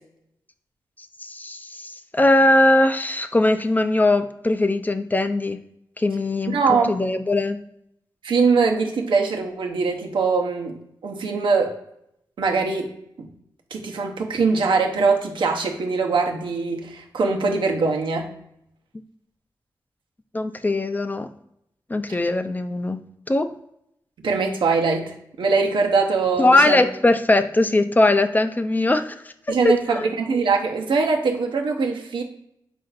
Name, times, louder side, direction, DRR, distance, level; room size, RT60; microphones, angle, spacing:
voice 1, 1.2-5.6 6.0-7.6 20.3-21.3 21.9-23.0 23.3-23.5 26.4-29.1 29.5-30.1, left 2 dB, 20° left, 9 dB, 0.4 m, -20 dB
voice 2, 6.5-7.0 8.2-11.8 12.4-12.9 13.2-13.3 13.7-18.3 24.2-26.9 29.5-32.2, right 4 dB, 85° right, 2 dB, 0.8 m, -22 dB
4.3 x 2.6 x 4.0 m, 0.77 s
cardioid pair, 55°, 8 cm